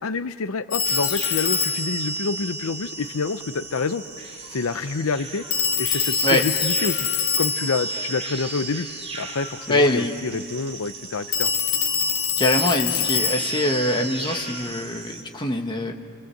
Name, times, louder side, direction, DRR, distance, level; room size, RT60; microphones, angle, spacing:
voice 1, 0.0-4.0 4.5-5.4 5.8-7.1 7.4-8.9 9.1-11.5, left 4 dB, 85° left, 12 dB, 0.7 m, -27 dB
Telephone, 0.7-3.4 5.5-9.1 11.3-14.8, left 5 dB, 65° left, 1.9 m, -26 dB
sound 1, 0.8-15.2, right 3 dB, 30° right, 3.2 m, -39 dB
voice 2, 9.7-10.1 12.4-15.9, left 1 dB, 25° left, 3 dB, 1.7 m, -23 dB
29.5 x 25.0 x 7.8 m, 2.5 s
head